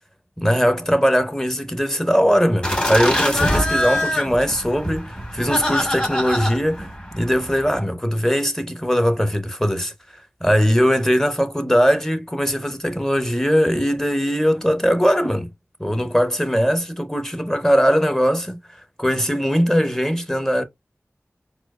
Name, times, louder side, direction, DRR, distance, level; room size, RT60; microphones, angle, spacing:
voice 1, 0.4-9.9 10.4-15.5 15.8-18.6 19.0-20.6, equal, 10° left, 0.7 m, -20 dB
sound 1, 2.6-7.8, left 1 dB, 25° left, 1.7 m, -24 dB
4.4 x 2.3 x 2.3 m
wide cardioid pair, 45°, 5 cm